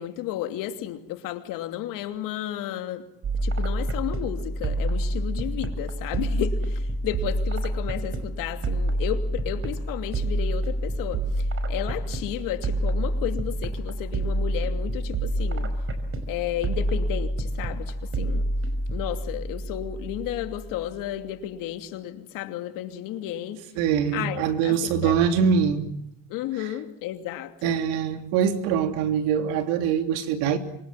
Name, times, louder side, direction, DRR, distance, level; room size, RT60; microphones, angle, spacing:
voice 1, 0.0-3.1 3.4-15.7 16.3-18.5 18.9-23.6 24.1-25.4 26.3-27.8, left 12 dB, 70° left, 2.8 m, -33 dB
sound 1, 3.2-20.8, right 1 dB, 40° right, 5.5 m, -28 dB
voice 2, 23.7-25.9 26.6-26.7 27.6-30.6, right 7 dB, 80° right, 3.2 m, -23 dB
27.0 x 23.5 x 7.6 m
supercardioid pair, 95°, 34 cm